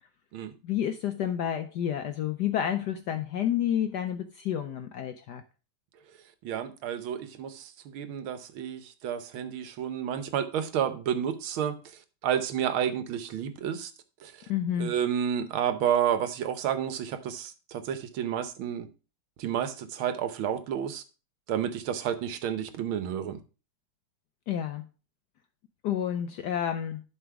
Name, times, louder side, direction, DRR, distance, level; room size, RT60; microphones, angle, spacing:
voice 1, 0.6-5.4 14.5-14.9 24.5-24.8 25.8-27.0, left 10 dB, 75° left, 1.0 m, -30 dB
voice 2, 6.4-11.8 12.2-13.9 14.2-14.3 14.8-18.9 19.4-21.0 21.5-23.4, right 9 dB, 75° right, 1.7 m, -30 dB
11.5 x 4.1 x 4.7 m
omnidirectional pair, 2.3 m